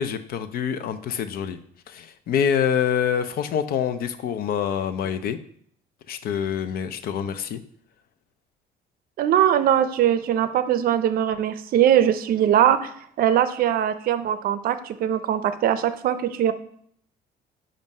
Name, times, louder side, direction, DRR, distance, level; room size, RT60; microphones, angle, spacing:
voice 1, 0.0-1.6 1.9-5.4 6.1-7.6, left 8 dB, 60° left, 11 dB, 0.5 m, -26 dB
voice 2, 9.2-12.9 13.2-16.5, right 10 dB, 60° right, 12 dB, 0.5 m, -21 dB
7.1 x 2.5 x 5.3 m, 0.63 s
cardioid pair, 110°, 17 cm